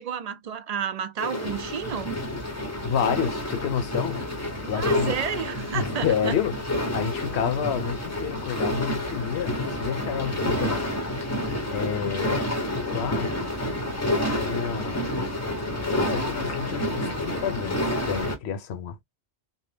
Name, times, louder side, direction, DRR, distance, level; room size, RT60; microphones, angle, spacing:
voice 1, 0.0-2.1 4.7-6.4, right 8 dB, 55° right, 0.4 m, -31 dB
sound 1, 1.2-18.3, left 1 dB, 20° left, 0.6 m, -29 dB
voice 2, 2.8-4.2 4.7-5.1 5.7-6.6 6.9-10.8 11.5-12.5 12.9-13.3 14.3-15.1 16.0-19.0, left 7 dB, 75° left, 0.9 m, -29 dB
2.7 x 2.1 x 3.3 m
omnidirectional pair, 1.1 m